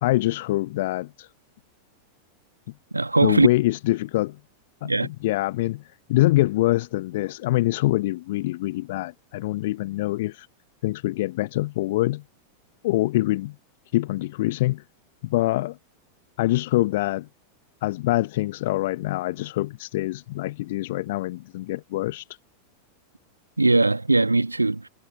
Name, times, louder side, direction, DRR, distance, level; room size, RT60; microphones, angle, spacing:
voice 1, 0.0-1.3 3.2-4.4 4.8-5.8 6.1-10.5 10.8-12.2 12.8-13.5 13.9-14.8 15.2-15.8 16.4-17.3 17.8-22.2, left 17 dB, 55° left, 1.2 m, -24 dB
voice 2, 2.9-3.5 4.8-5.1 23.6-24.9, right 2 dB, 80° right, 1.6 m, -20 dB
figure-of-eight pair, 90°, 0 cm